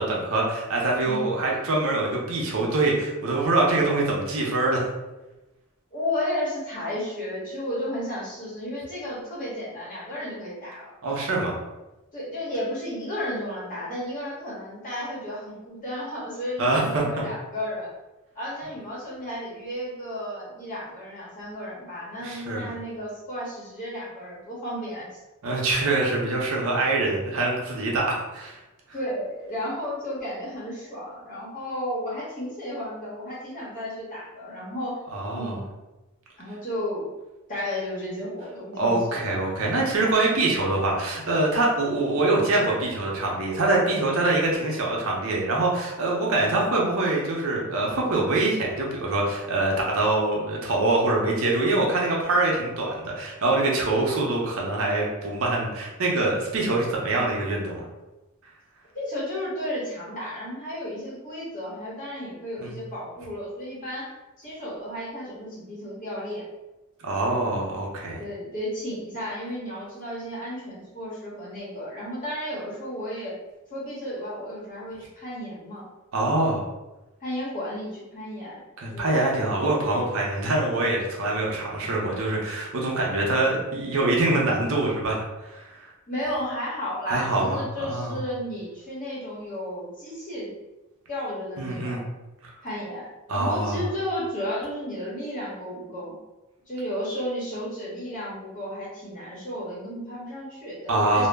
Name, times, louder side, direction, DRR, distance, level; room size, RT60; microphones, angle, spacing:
voice 1, 0.0-4.8 11.0-11.6 16.6-17.0 22.2-22.6 25.4-28.6 35.1-35.6 38.8-57.9 62.6-62.8 67.0-68.2 76.1-76.6 78.8-85.9 87.1-88.1 91.6-92.0 93.3-93.8 100.9-101.3, right 2 dB, 65° right, -2 dB, 0.6 m, -24 dB
voice 2, 5.9-10.9 12.1-17.9 18.3-25.2 28.9-35.0 35.3-35.7 36.4-37.1 37.5-39.2 58.9-64.1 64.4-66.4 68.2-73.4 73.7-75.8 77.2-78.6 78.9-79.1 86.1-90.5 91.1-92.0 92.6-96.1 96.7-101.3, equal, 40° left, -7 dB, 1.0 m, -33 dB
2.2 x 2.0 x 3.3 m, 1.0 s
head